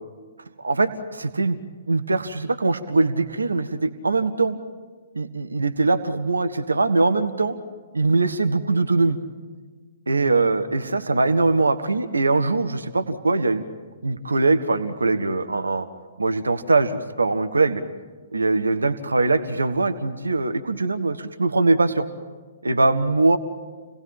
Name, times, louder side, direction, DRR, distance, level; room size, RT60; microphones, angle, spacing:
voice 1, 0.6-1.6 1.9-4.6 5.1-7.5 7.9-9.2 10.1-13.6 14.0-15.9 16.2-17.8 18.3-22.1 22.6-23.4, right 3 dB, 80° right, 9 dB, 1.4 m, -22 dB
29.0 x 18.5 x 8.9 m, 1.4 s
figure-of-eight pair, 120°, 0 cm